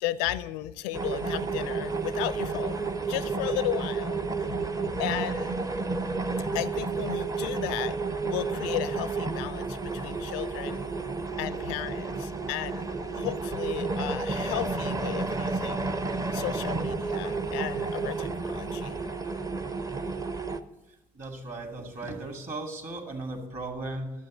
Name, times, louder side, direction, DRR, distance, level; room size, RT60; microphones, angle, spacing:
voice 1, 0.0-5.6 6.5-7.9 8.2-10.8 11.4-12.9 13.1-15.9 16.3-19.0, left 13 dB, 65° left, 16 dB, 0.5 m, -34 dB
sound 1, 0.9-20.6, right 4 dB, 15° right, 0.7 m, -31 dB
voice 2, 21.1-24.1, right 2 dB, 40° right, 3 dB, 2.4 m, -36 dB
12.0 x 7.5 x 6.2 m, 0.99 s
figure-of-eight pair, 50°, 20 cm